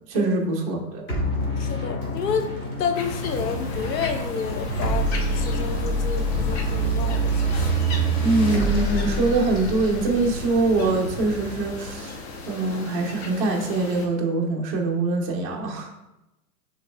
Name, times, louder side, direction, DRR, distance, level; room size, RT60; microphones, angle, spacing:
voice 1, 0.1-1.1 8.2-12.1 12.5-15.9, right 2 dB, 25° right, 0 dB, 0.4 m, -23 dB
sound 1, 1.1-11.9, right 2 dB, 20° left, 1.2 m, -27 dB
voice 2, 1.6-2.5 2.8-5.1 5.3-7.5, left 6 dB, 75° left, 8 dB, 0.8 m, -29 dB
sound 2, 2.9-14.1, left 1 dB, 40° left, 0.8 m, -34 dB
6.6 x 3.1 x 2.2 m, 0.93 s
hypercardioid pair, 130°, 49 cm